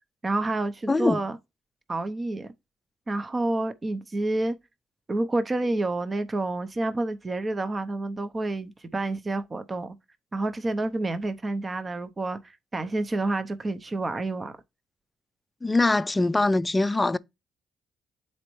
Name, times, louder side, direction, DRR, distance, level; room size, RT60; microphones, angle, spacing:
voice 1, 0.2-1.4 1.9-2.5 3.1-4.6 5.1-10.0 10.3-14.5, right 2 dB, 30° right, 0.7 m, -29 dB
voice 2, 0.9-1.2 15.6-17.2, left 2 dB, 20° left, 0.4 m, -22 dB
9.4 x 4.3 x 3.1 m
cardioid pair, 90°, 0 cm